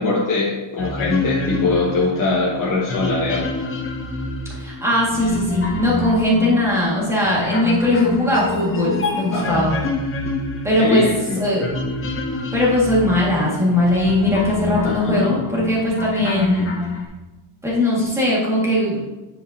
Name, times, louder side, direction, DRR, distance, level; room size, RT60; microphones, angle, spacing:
voice 1, 0.0-3.5 9.3-9.7 10.8-11.4 14.8-15.4, left 3 dB, 40° left, -5 dB, 1.2 m, -22 dB
sound 1, 0.8-17.1, left 2 dB, 25° left, 0.8 m, -28 dB
voice 2, 4.5-9.8 10.6-11.1 11.4-11.6 12.5-16.7 17.6-19.0, left 1 dB, 5° right, -6 dB, 1.9 m, -19 dB
9.9 x 5.1 x 2.8 m, 1.2 s
cardioid pair, 165°, 50 cm